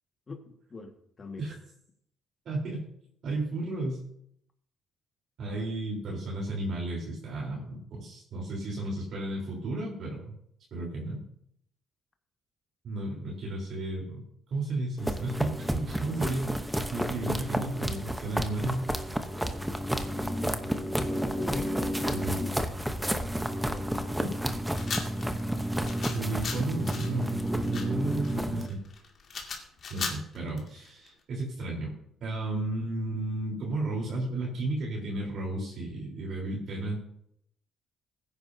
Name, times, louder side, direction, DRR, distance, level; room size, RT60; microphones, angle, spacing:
voice 1, 0.3-1.5 20.2-22.6 23.0-23.3 23.6-24.1, left 4 dB, 30° left, 4 dB, 1.7 m, -42 dB
voice 2, 2.5-2.8 3.2-4.0 5.4-10.3 10.7-11.2 12.8-16.6 16.9-18.9 22.1-22.4 24.2-24.3 26.1-28.8 29.9-31.9 32.2-37.0, right 2 dB, 55° right, -4 dB, 3.8 m, -33 dB
sound 1, 15.0-28.7, equal, 5° right, 0.9 m, -31 dB
sound 2, 24.8-31.1, left 5 dB, 45° left, 2.3 m, -37 dB
22.5 x 9.8 x 2.7 m, 0.70 s
cardioid pair, 150°, 0 cm